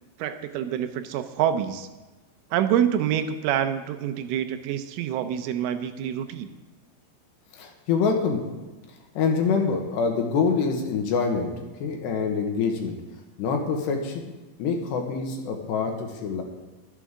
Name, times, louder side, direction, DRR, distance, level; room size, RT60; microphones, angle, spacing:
voice 1, 0.2-1.9 2.5-6.5, right 9 dB, 80° right, 8 dB, 3.2 m, -26 dB
voice 2, 7.5-8.4 9.1-11.5 11.8-12.9 13.4-14.2 14.6-16.4, left 5 dB, 70° left, 3 dB, 3.2 m, -25 dB
23.0 x 8.3 x 3.7 m, 1.2 s
omnidirectional pair, 5.7 m